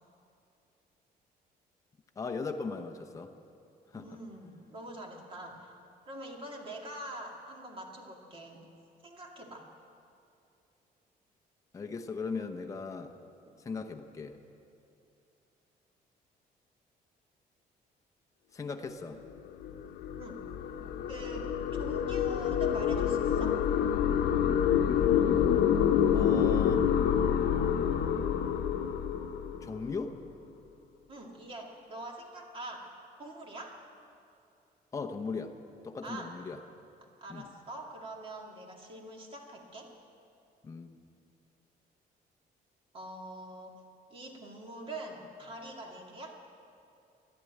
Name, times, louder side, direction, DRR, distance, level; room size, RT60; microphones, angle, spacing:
voice 1, 2.2-3.3 3.9-4.2 11.7-13.1 13.6-14.3 18.5-19.2 26.1-26.9 29.6-30.2 34.9-35.5 35.8-36.6 37.3-37.5 40.6-40.9, left 4 dB, 20° left, 5 dB, 0.8 m, -38 dB
voice 2, 3.9-5.7 6.1-8.6 9.0-9.7 13.5-13.6 20.2-20.4 21.1-23.6 31.1-32.9 33.2-33.8 36.0-36.3 37.2-39.9 42.9-43.7 44.1-46.4, right 1 dB, 35° right, 1 dB, 2.2 m, -44 dB
sound 1, 19.4-30.0, left 8 dB, 80° left, 0.9 m, -27 dB
14.5 x 11.0 x 9.0 m, 2.6 s
cardioid pair, 155°, 16 cm